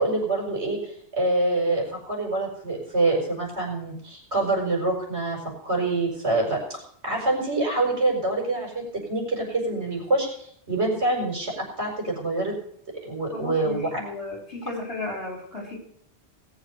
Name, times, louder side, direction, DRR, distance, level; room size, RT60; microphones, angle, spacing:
voice 1, 0.0-6.8 7.0-10.3 10.7-12.5 13.0-14.0, right 2 dB, 70° right, -1 dB, 5.7 m, -26 dB
voice 2, 13.3-15.8, left 2 dB, 60° left, 0 dB, 5.2 m, -34 dB
18.5 x 7.2 x 6.8 m, 0.65 s
omnidirectional pair, 1.2 m